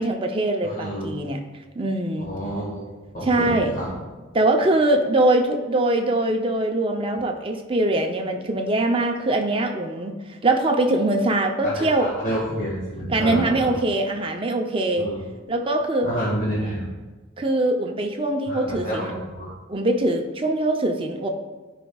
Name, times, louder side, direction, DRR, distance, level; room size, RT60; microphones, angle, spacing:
voice 1, 0.0-1.4 1.8-2.3 3.2-3.7 4.3-10.2 10.4-12.1 13.1-15.1 15.5-16.1 17.4-19.1 19.7-21.3, right 2 dB, 25° right, 4 dB, 0.6 m, -22 dB
voice 2, 0.6-1.1 2.2-2.8 3.1-3.9 11.6-13.7 15.0-15.2 16.0-16.9 18.5-19.5, equal, 45° left, -7 dB, 1.7 m, -29 dB
14.0 x 5.1 x 2.3 m, 1.2 s
head